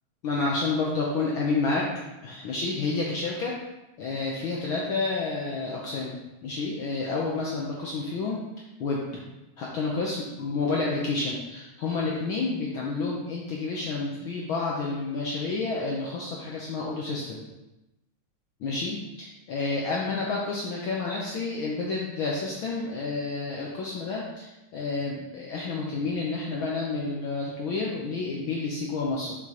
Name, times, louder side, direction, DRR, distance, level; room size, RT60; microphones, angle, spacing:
voice 1, 0.2-1.8 2.2-3.5 4.0-8.4 8.8-9.1 9.6-17.4 18.6-29.4, left 3 dB, 85° left, -3 dB, 1.1 m, -30 dB
7.0 x 6.1 x 2.9 m, 0.99 s
omnidirectional pair, 3.3 m